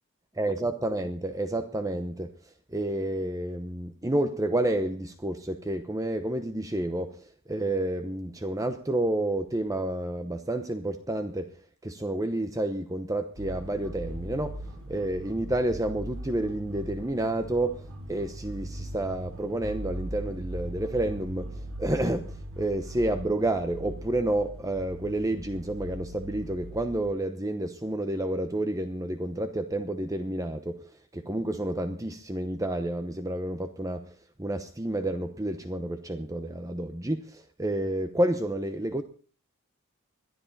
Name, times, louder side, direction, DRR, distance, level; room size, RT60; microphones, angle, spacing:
voice 1, 0.3-11.6 11.8-14.6 14.9-34.1 34.4-39.0, right 1 dB, 15° right, 0.9 m, -30 dB
sound 1, 13.4-27.1, right 1 dB, 70° right, 5.0 m, -40 dB
21.5 x 13.0 x 4.2 m
head